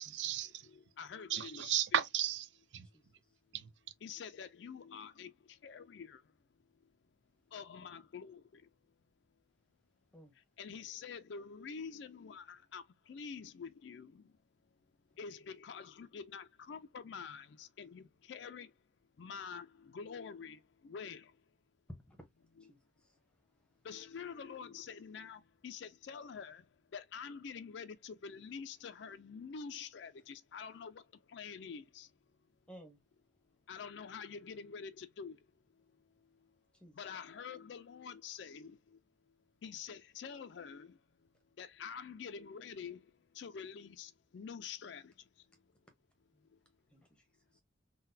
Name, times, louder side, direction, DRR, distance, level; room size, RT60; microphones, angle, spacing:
voice 1, 0.0-0.7 1.3-2.5 2.7-2.9 3.5-3.7, right 10 dB, 70° right, 0.4 m, -34 dB
voice 2, 0.6-2.0 4.0-6.2 7.5-8.6 10.6-14.2 15.2-18.7 19.2-21.3 23.8-26.6 26.9-31.0 31.3-32.1 33.7-35.4 37.0-38.8 39.6-41.0 41.6-43.0 43.3-45.1, left 6 dB, 70° left, 0.4 m, -47 dB
voice 3, 22.7-23.2 32.7-33.0 36.7-36.9 46.3-46.5 46.9-47.2 47.5-47.6, right 1 dB, 5° left, 0.8 m, -57 dB
3.8 x 2.2 x 2.6 m
head